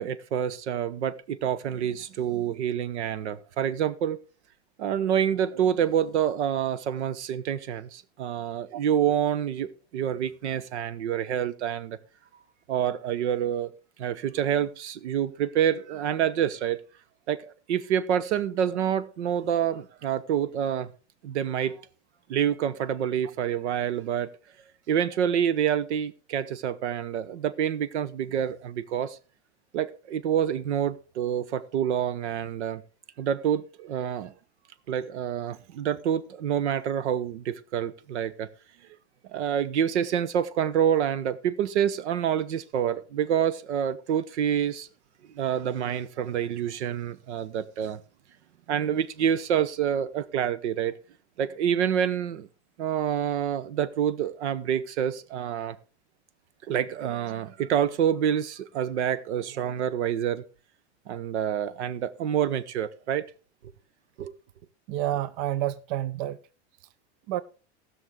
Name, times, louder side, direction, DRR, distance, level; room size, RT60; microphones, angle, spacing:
voice 1, 0.0-4.2 4.8-12.0 12.7-13.7 14.0-16.8 17.3-17.4 17.7-20.9 21.2-21.7 22.3-24.3 24.9-29.2 29.7-32.8 33.2-34.3 34.9-38.5 39.3-44.9 45.3-48.0 48.7-50.9 51.4-52.5 52.8-55.8 56.7-60.4 61.1-63.2 64.2-64.3, right 9 dB, 85° right, 1.0 m, -27 dB
voice 2, 64.9-66.4 67.3-67.4, right 13 dB, 55° right, 0.7 m, -29 dB
19.0 x 6.3 x 3.7 m
hypercardioid pair, 110°, 34 cm